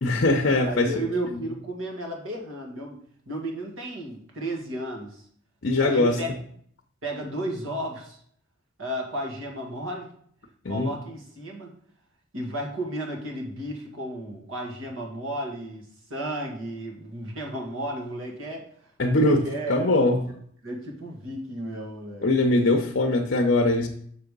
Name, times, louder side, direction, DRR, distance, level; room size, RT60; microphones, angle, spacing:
voice 1, 0.0-0.9 5.6-6.2 10.6-10.9 19.0-19.4 19.7-20.2 22.2-23.9, left 2 dB, 55° left, 3 dB, 0.7 m, -21 dB
voice 2, 0.7-3.0 3.3-5.2 5.8-6.3 7.0-8.2 8.8-10.1 10.7-11.7 12.3-18.6 19.1-19.9 20.6-22.3, right 1 dB, 75° right, 0 dB, 1.9 m, -33 dB
6.6 x 4.9 x 5.3 m, 0.62 s
head